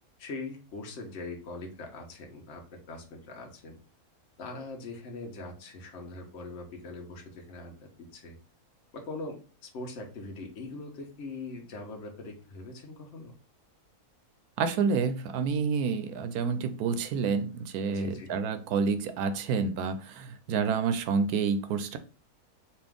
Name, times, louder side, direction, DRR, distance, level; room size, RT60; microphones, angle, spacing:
voice 1, 0.2-3.8 4.4-8.4 8.9-13.3 17.9-18.3, left 3 dB, 55° left, 1 dB, 1.1 m, -42 dB
voice 2, 14.6-22.0, right 5 dB, 80° right, 10 dB, 1.1 m, -29 dB
4.3 x 2.5 x 3.5 m, 0.36 s
omnidirectional pair, 1.6 m